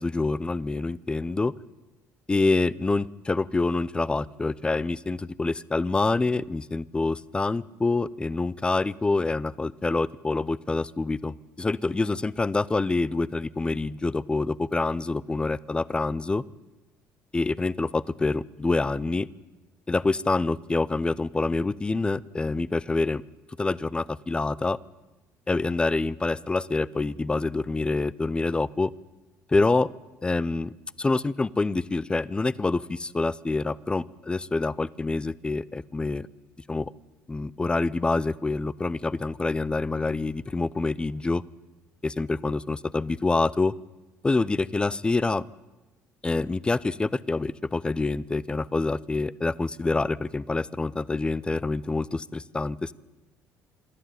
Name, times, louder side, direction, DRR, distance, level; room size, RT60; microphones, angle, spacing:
voice 1, 0.0-1.5 2.3-16.4 17.3-19.3 19.9-23.2 23.6-24.8 25.5-28.9 29.5-29.9 30.2-30.7 31.0-36.3 36.7-36.9 37.3-41.4 42.0-43.7 44.2-45.5 46.2-52.9, left 3 dB, 15° left, 20 dB, 0.6 m, -26 dB
26.5 x 11.5 x 9.4 m, 1.1 s
cardioid pair, 100°, 6 cm